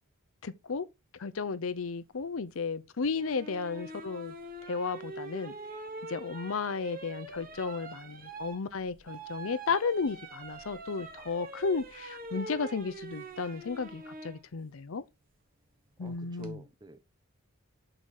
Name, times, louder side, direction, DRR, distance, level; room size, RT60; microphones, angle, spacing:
voice 1, 0.4-0.9 1.2-4.3 4.7-5.6 6.1-15.0 16.0-16.6, left 4 dB, 65° left, 0.6 m, -33 dB
sound 1, 3.2-14.4 16.1-16.5, right 3 dB, 40° right, 1.2 m, -44 dB
voice 2, 16.0-17.2, right 1 dB, 20° right, 0.7 m, -48 dB
6.4 x 4.9 x 4.2 m
head